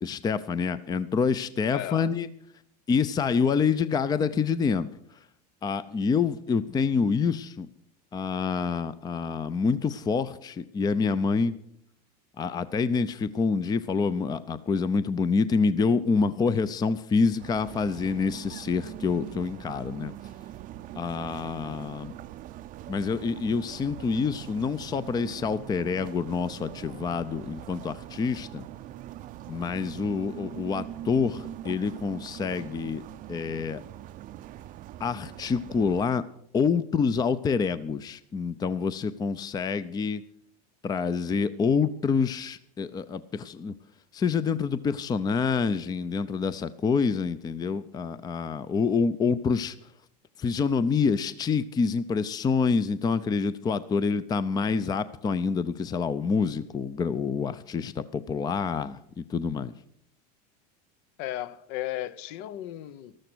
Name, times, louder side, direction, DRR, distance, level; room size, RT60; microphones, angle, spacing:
voice 1, 0.0-2.3 2.9-4.9 5.6-7.7 8.1-11.5 12.4-20.1 20.9-22.1 22.9-28.7 29.5-33.0 33.3-33.8 35.0-36.2 36.5-40.2 40.8-43.7 44.1-49.8 50.4-59.7, left 5 dB, 20° left, 15 dB, 0.6 m, -27 dB
voice 2, 1.7-2.1 61.2-63.2, left 14 dB, 60° left, 18 dB, 0.9 m, -35 dB
sound 1, 17.4-36.1, right 13 dB, 40° right, 0.6 m, -42 dB
13.5 x 13.0 x 6.2 m, 0.69 s
supercardioid pair, 120°, 21 cm